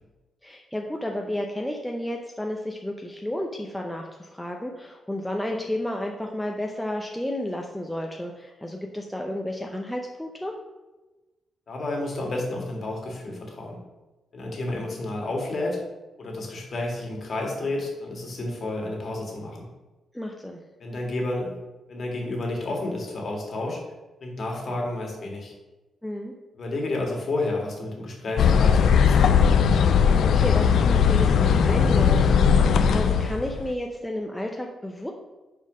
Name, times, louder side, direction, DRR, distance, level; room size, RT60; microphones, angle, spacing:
voice 1, 0.4-10.5 20.1-20.6 26.0-26.3 30.1-35.1, left 1 dB, 5° left, 1 dB, 0.5 m, -32 dB
voice 2, 11.7-13.8 14.3-15.8 16.2-19.7 20.8-21.5 21.9-23.8 24.2-25.5 26.6-29.2, left 2 dB, 45° left, -1 dB, 1.8 m, -30 dB
sound 1, 28.4-33.7, left 7 dB, 70° left, 0.4 m, -19 dB
5.4 x 4.3 x 6.1 m, 1.1 s
cardioid pair, 135°, 0 cm